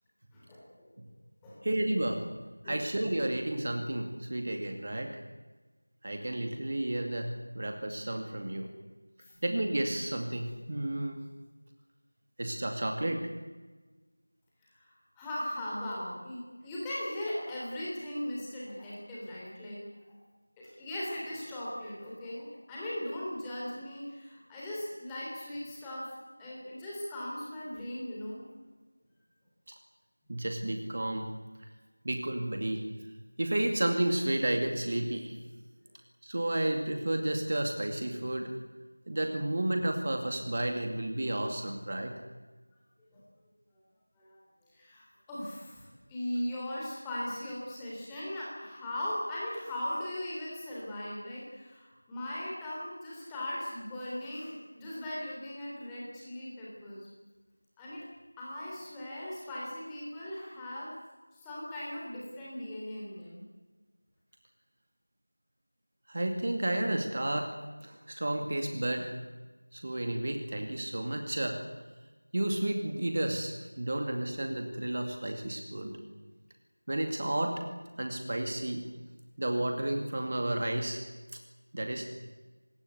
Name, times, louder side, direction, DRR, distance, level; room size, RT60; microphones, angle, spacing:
voice 1, 0.3-0.9 1.4-1.6 2.6-2.8 9.2-9.4 14.7-20.0 20.6-28.4 43.1-43.2 44.2-44.4 44.7-57.1 57.8-58.0 58.4-60.9 61.3-63.4, left 1 dB, 5° left, -7 dB, 3.4 m, -38 dB
voice 2, 1.6-2.3 2.6-5.2 6.0-8.7 9.4-11.2 12.4-13.3 29.7-29.8 30.3-31.3 32.0-32.9 33.4-35.4 36.2-38.5 39.1-42.2 66.1-67.6 67.8-69.1 69.7-71.6 72.3-76.0 76.9-77.7 78.0-78.9 79.4-81.0 81.7-82.0, right 1 dB, 30° right, 4 dB, 2.3 m, -32 dB
26.0 x 20.5 x 8.2 m, 1.3 s
figure-of-eight pair, 175°, 0 cm